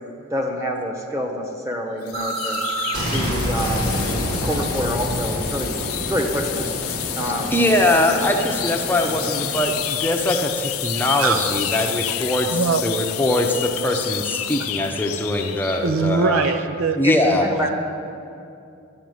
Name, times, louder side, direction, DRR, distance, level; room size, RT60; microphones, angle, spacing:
voice 1, 0.3-2.6 3.1-4.0 4.3-5.8 6.1-6.7 7.2-7.6 16.4-16.5 17.0-17.7, equal, 15° right, 2 dB, 1.2 m, -27 dB
sound 1, 2.1-15.9, left 14 dB, 75° left, 0.5 m, -29 dB
sound 2, 2.1-7.9, right 1 dB, 90° right, 2.5 m, -27 dB
sound 3, 3.9-9.7, equal, 40° right, 2.4 m, -33 dB
voice 2, 7.5-16.5 17.0-17.5, left 1 dB, 10° left, 2 dB, 0.7 m, -22 dB
voice 3, 11.1-11.6 12.5-12.8 13.1-13.2 14.6-14.7 15.8-17.0 17.3-17.4, right 4 dB, 70° right, 10 dB, 0.6 m, -22 dB
12.0 x 7.2 x 9.4 m, 2.6 s
head